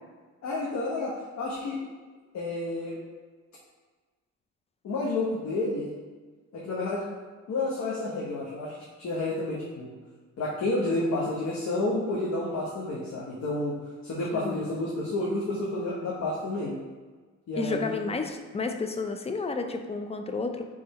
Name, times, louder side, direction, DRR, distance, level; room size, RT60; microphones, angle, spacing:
voice 1, 0.4-1.8 2.3-3.0 4.8-5.9 6.5-7.0 7.5-9.9 10.4-13.7 14.0-16.8 17.5-18.1, left 2 dB, 65° left, -5 dB, 1.0 m, -30 dB
voice 2, 17.6-20.7, left 3 dB, 20° left, 5 dB, 0.5 m, -31 dB
3.7 x 3.3 x 4.1 m, 1.4 s
cardioid pair, 90°, 30 cm